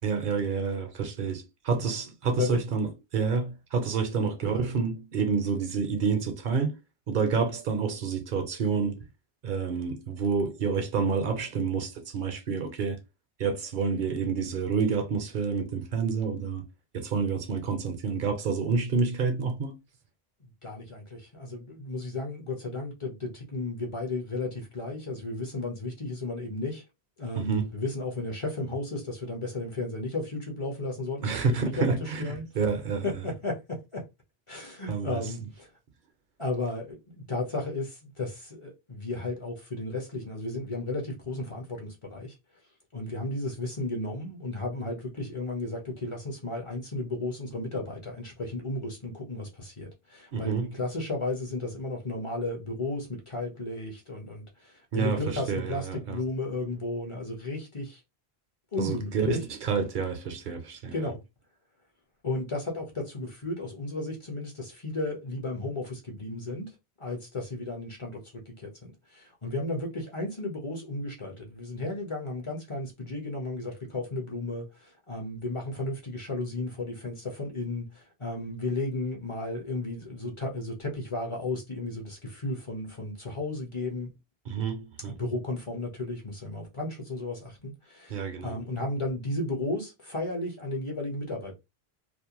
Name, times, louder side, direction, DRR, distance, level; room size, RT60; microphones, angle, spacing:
voice 1, 0.0-6.8 7.1-9.1 9.4-13.0 13.4-16.6 16.9-19.7 27.3-27.7 31.2-33.0 34.9-35.2 50.3-50.7 54.9-56.2 58.8-61.1 84.5-85.1 88.1-88.6, right 5 dB, 60° right, 0.7 m, -28 dB
voice 2, 20.4-26.8 27.2-32.5 33.0-34.0 34.5-35.7 36.4-42.4 42.9-58.0 58.7-59.4 60.9-61.2 62.2-66.7 67.0-84.1 85.0-91.5, left 2 dB, 35° left, 0.7 m, -34 dB
2.5 x 2.1 x 2.8 m
omnidirectional pair, 1.0 m